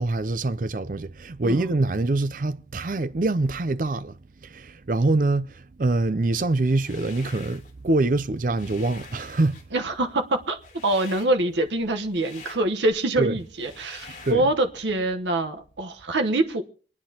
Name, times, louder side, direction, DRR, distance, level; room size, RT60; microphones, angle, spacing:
voice 1, 0.0-9.5 13.2-13.4 14.1-14.5, right 2 dB, 50° right, 0.5 m, -25 dB
sound 1, 6.6-7.7 8.1-14.3, left 4 dB, 45° left, 2.7 m, -46 dB
voice 2, 9.7-10.6 10.8-16.6, right 2 dB, 85° right, 1.1 m, -25 dB
27.5 x 9.8 x 2.9 m
head